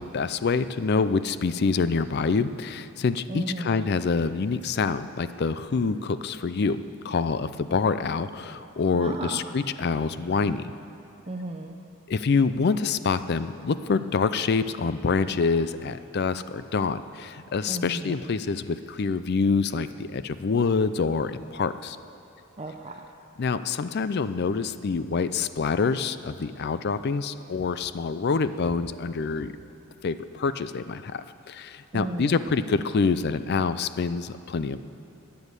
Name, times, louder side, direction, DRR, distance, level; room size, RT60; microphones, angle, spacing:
voice 1, 0.0-10.7 12.1-22.0 23.4-29.5 30.0-34.8, left 4 dB, 50° left, 13 dB, 0.4 m, -26 dB
voice 2, 3.3-3.9 8.9-9.4 11.3-11.8 17.7-18.2 22.6-23.1 31.9-32.6, right 2 dB, 30° right, 1 dB, 0.6 m, -34 dB
13.0 x 9.3 x 8.2 m, 2.7 s
head